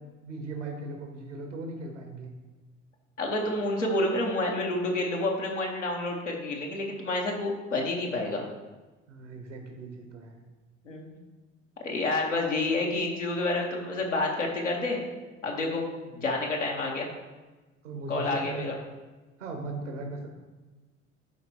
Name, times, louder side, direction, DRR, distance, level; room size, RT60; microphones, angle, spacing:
voice 1, 0.2-2.3 9.1-10.4 16.1-16.3 17.8-18.7 19.4-20.3, right 2 dB, 80° right, 3 dB, 1.2 m, -38 dB
voice 2, 3.2-8.5 10.8-11.1 11.8-15.0 15.4-15.8 16.1-17.1 18.1-18.8, left 2 dB, 90° left, -1 dB, 1.1 m, -29 dB
11.5 x 4.5 x 2.8 m, 1.2 s
figure-of-eight pair, 60°, 36 cm